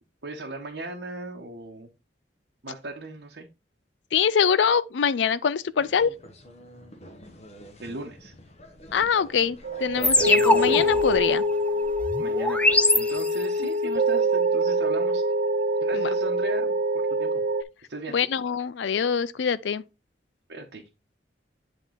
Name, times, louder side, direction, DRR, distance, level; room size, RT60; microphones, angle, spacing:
voice 1, 0.2-1.9 2.6-3.5 7.8-8.3 12.2-15.2 15.8-17.5 17.9-18.3 20.5-20.8, right 2 dB, 75° right, 1.1 m, -37 dB
voice 2, 4.1-6.1 8.9-11.4 13.6-13.7 15.9-16.1 18.1-19.8, left 7 dB, 85° left, 0.4 m, -24 dB
sound 1, 5.8-11.2, right 1 dB, 35° left, 1.2 m, -41 dB
sound 2, 9.6-17.6, equal, 50° right, 0.5 m, -25 dB
sound 3, 10.0-13.7, left 2 dB, 5° left, 0.5 m, -24 dB
8.2 x 3.7 x 4.0 m
head